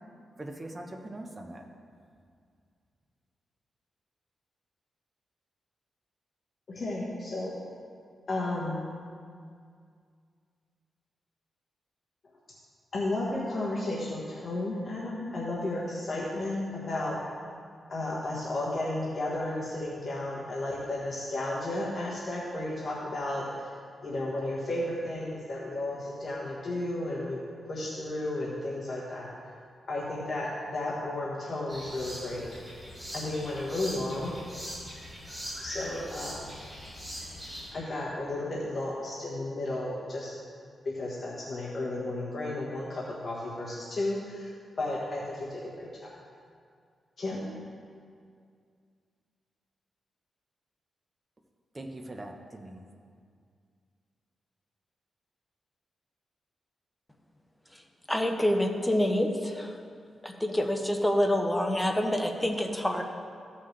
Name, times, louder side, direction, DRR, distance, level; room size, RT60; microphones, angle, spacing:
voice 1, 0.4-1.6 51.7-52.8, right 1 dB, 25° right, 3 dB, 1.0 m, -41 dB
voice 2, 6.7-7.5 8.3-8.8 12.9-17.2 17.9-23.7 24.0-29.3 29.9-32.5 33.1-34.3 35.6-36.5 37.7-40.3 40.8-46.1 47.2-47.4, left 2 dB, 45° left, -5 dB, 1.4 m, -33 dB
sound 1, 31.7-37.7, equal, 10° right, 2.4 m, -42 dB
voice 3, 58.1-59.8 60.2-63.0, left 1 dB, 10° left, 3 dB, 0.9 m, -27 dB
14.5 x 5.7 x 3.3 m, 2.2 s
cardioid pair, 90°, 0 cm